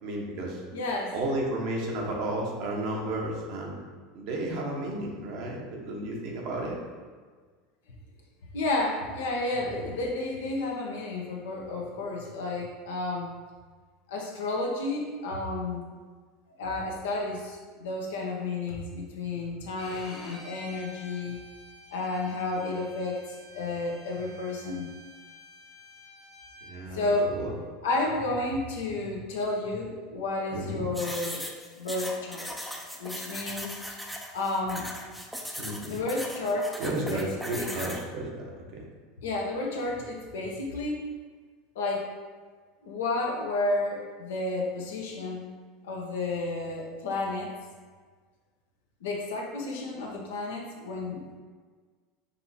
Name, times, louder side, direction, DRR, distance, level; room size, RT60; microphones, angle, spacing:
voice 1, 0.0-0.6 1.1-3.8 4.1-6.8 26.6-27.5 30.5-30.9 35.6-36.0 36.8-38.5 38.7-38.8, right 1 dB, 55° right, -1 dB, 1.0 m, -32 dB
voice 2, 0.7-1.1 8.5-13.3 14.1-15.9 16.6-21.4 21.9-24.9 26.9-27.3 27.8-31.4 31.8-32.5 33.0-33.7 34.3-34.9 35.9-37.8 39.2-41.0 41.7-42.1 42.8-45.4 45.8-47.5 49.0-51.4, left 2 dB, 70° left, 0 dB, 0.8 m, -31 dB
Bowed string instrument, 19.8-26.7, equal, 55° left, 1.3 m, -49 dB
sound 1, 30.9-38.0, equal, ahead, 0.6 m, -38 dB
5.3 x 2.9 x 2.7 m, 1.5 s
hypercardioid pair, 80°, 0 cm